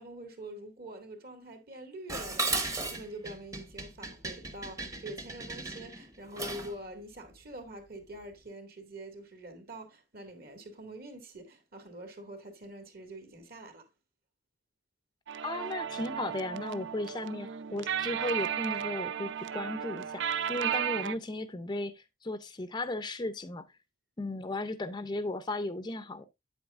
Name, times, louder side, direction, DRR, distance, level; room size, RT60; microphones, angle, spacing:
voice 1, 0.0-13.9, right 1 dB, 50° right, 2.1 m, -45 dB
Dishes pots and pans, 2.1-6.8, right 3 dB, 15° right, 0.9 m, -36 dB
sound 1, 15.3-21.2, right 8 dB, 70° right, 0.4 m, -34 dB
voice 2, 15.4-20.2 20.5-23.6 24.2-26.3, left 2 dB, 20° left, 0.5 m, -35 dB
8.6 x 8.0 x 2.4 m
head